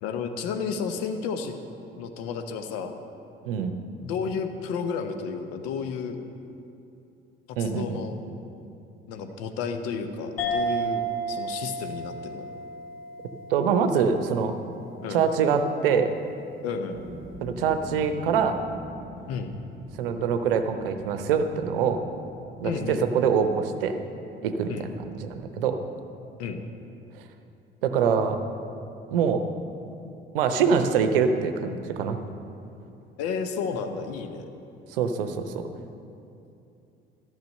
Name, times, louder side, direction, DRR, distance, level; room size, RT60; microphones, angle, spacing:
voice 1, 0.0-1.5 2.0-2.9 4.0-6.2 7.6-8.1 9.1-11.0 11.3-12.4 15.0-15.2 16.6-17.0 19.3-19.6 22.6-23.0 24.7-24.9 26.4-26.6 33.2-34.4, left 5 dB, 55° left, 7 dB, 0.9 m, -32 dB
voice 2, 7.6-8.0 13.5-14.5 15.1-16.1 17.4-18.6 20.0-22.0 22.6-23.9 24.4-24.9 25.2-25.8 27.8-28.4 29.1-29.4 30.3-32.2 34.9-35.6, right 6 dB, 70° right, 8 dB, 0.7 m, -24 dB
sound 1, 10.4-15.3, right 2 dB, 75° left, 1.4 m, -33 dB
sound 2, 16.9-23.0, equal, 25° left, 2.7 m, -44 dB
13.0 x 6.1 x 6.5 m, 2.7 s
figure-of-eight pair, 55°, 29 cm